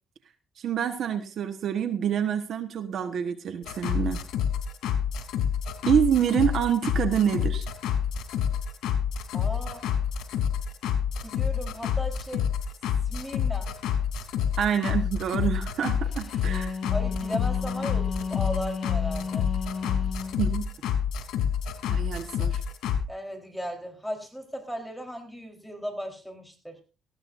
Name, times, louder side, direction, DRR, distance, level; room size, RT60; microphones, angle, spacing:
voice 1, 0.6-4.2 5.9-7.6 14.6-16.8 20.4-20.7 21.9-22.6, right 8 dB, 65° right, 7 dB, 1.3 m, -27 dB
sound 1, 3.6-23.0, left 8 dB, 90° left, 2.7 m, -28 dB
voice 2, 9.3-9.9 11.2-12.5 13.1-13.7 16.9-19.5 23.1-26.8, equal, ahead, 2 dB, 4.0 m, -36 dB
Wind instrument woodwind instrument, 16.2-20.4, left 5 dB, 35° left, 1.4 m, -34 dB
19.0 x 14.5 x 2.6 m, 0.30 s
cardioid pair, 120°, 0 cm